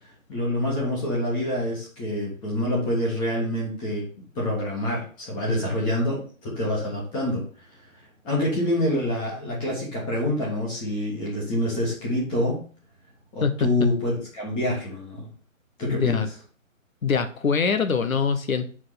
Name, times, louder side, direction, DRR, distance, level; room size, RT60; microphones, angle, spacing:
voice 1, 0.3-4.1 4.3-7.4 8.2-12.6 13.3-15.3 15.8-16.2, left 1 dB, 10° left, -3 dB, 1.4 m, -26 dB
voice 2, 15.9-16.3 17.0-18.7, left 5 dB, 80° left, 9 dB, 1.2 m, -23 dB
4.7 x 4.7 x 5.7 m, 0.40 s
hypercardioid pair, 160°, 41 cm